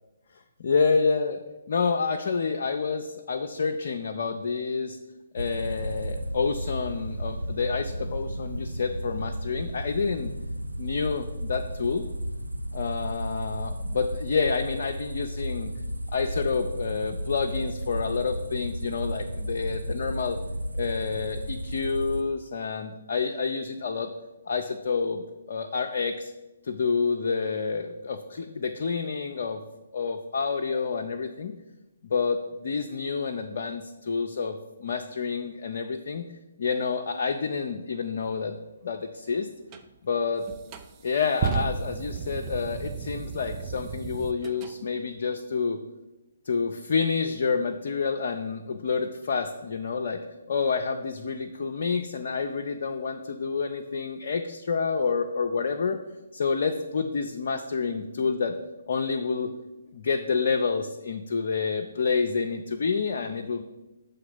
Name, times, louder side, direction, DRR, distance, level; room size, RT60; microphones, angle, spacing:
voice 1, 0.6-1.4 1.7-5.0 5.3-10.3 10.8-12.1 12.7-15.7 16.1-20.4 20.8-24.1 24.5-26.3 26.6-29.6 29.9-31.5 32.0-36.3 36.6-38.6 38.8-39.5 40.0-40.5 41.0-45.8 46.5-50.2 50.5-56.0 56.3-58.6 58.9-59.5 59.9-63.6, left 5 dB, 55° left, 4 dB, 0.4 m, -28 dB
sound 1, 5.4-22.2, equal, 85° right, 0.5 m, -33 dB
sound 2, 39.7-39.8 40.4-44.7, right 7 dB, 25° right, 0.4 m, -33 dB
6.5 x 3.5 x 5.5 m, 1.1 s
figure-of-eight pair, 130°, 0 cm